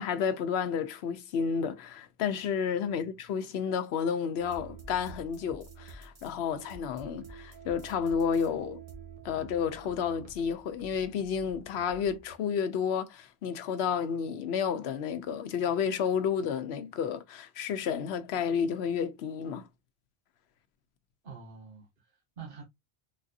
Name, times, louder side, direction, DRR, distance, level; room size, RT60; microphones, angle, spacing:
voice 1, 0.0-8.8 9.2-19.7, left 7 dB, 90° left, 0.9 m, -31 dB
voice 2, 2.9-3.2 21.2-22.6, right 6 dB, 60° right, 1.2 m, -47 dB
sound 1, 4.4-12.4, right 4 dB, 40° right, 0.9 m, -49 dB
3.9 x 2.6 x 2.4 m
omnidirectional pair, 1.0 m